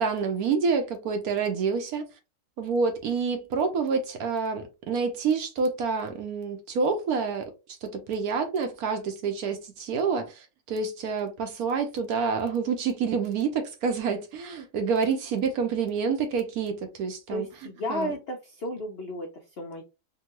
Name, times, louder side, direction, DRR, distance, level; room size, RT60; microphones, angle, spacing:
voice 1, 0.0-2.1 2.6-7.5 7.8-17.5 17.9-18.1, right 5 dB, 70° right, 1.0 m, -28 dB
voice 2, 17.3-19.8, left 1 dB, 75° left, 0.5 m, -33 dB
3.6 x 2.2 x 2.9 m
omnidirectional pair, 1.9 m